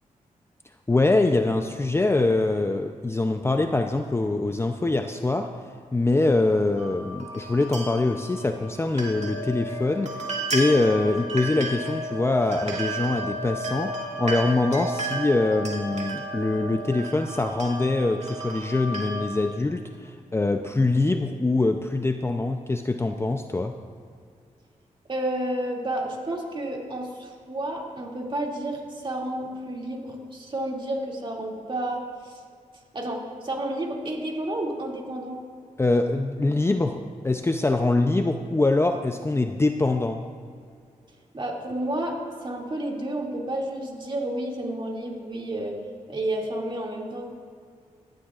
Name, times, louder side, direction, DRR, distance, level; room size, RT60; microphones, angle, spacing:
voice 1, 0.9-5.5 5.9-10.1 10.5-23.8 35.8-40.2, left 2 dB, 20° left, 6 dB, 0.5 m, -24 dB
sound 1, 6.8-19.2, right 1 dB, 55° right, 2.1 m, -33 dB
voice 2, 25.1-32.4 32.9-35.4 41.3-42.2 42.4-45.7 46.1-47.3, right 1 dB, 40° right, -1 dB, 2.5 m, -31 dB
16.0 x 11.5 x 2.5 m, 2.2 s
cardioid pair, 65°, 14 cm